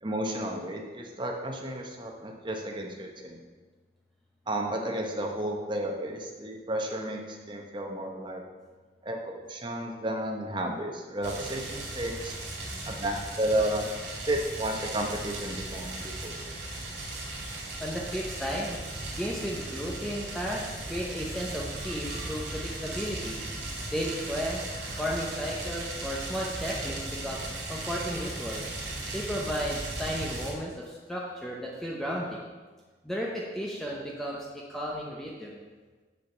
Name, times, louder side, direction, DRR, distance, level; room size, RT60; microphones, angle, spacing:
voice 1, 0.0-3.4 4.5-8.4 9.0-12.4 12.9-13.9 14.3-16.5, right 1 dB, 25° right, 2 dB, 1.0 m, -32 dB
sound 1, 11.2-30.5, right 2 dB, 75° right, 2.3 m, -37 dB
voice 2, 17.8-18.8 19.1-20.6 20.9-23.4 23.9-24.6 25.0-27.4 27.7-28.6 29.1-32.3 33.0-34.4 34.7-35.5, equal, ahead, -4 dB, 0.8 m, -34 dB
6.8 x 5.1 x 7.1 m, 1.4 s
head